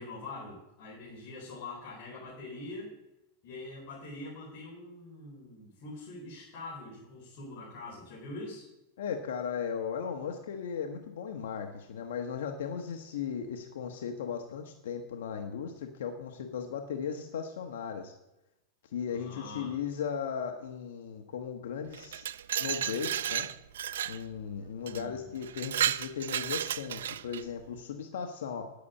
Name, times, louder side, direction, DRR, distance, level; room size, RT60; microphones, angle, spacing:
voice 1, 0.0-2.9 3.4-8.7 19.1-19.7 24.8-25.3, left 2 dB, 50° left, -3 dB, 4.0 m, -44 dB
voice 2, 9.0-18.1 18.9-22.2 22.6-23.5 24.1-28.7, left 7 dB, 80° left, 4 dB, 1.2 m, -37 dB
Glass, 21.9-24.2 24.9-25.0 25.4-27.4, right 10 dB, 90° right, 0.5 m, -33 dB
9.9 x 8.4 x 8.2 m, 0.91 s
supercardioid pair, 140°, 0 cm